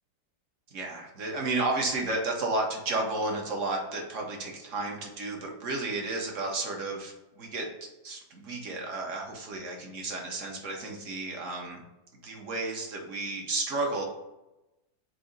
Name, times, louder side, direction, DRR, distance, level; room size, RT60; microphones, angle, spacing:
voice 1, 0.7-7.7 8.0-11.8 12.2-14.0, right 2 dB, 50° right, 1 dB, 1.1 m, -32 dB
4.8 x 2.7 x 3.9 m, 0.96 s
omnidirectional pair, 2.0 m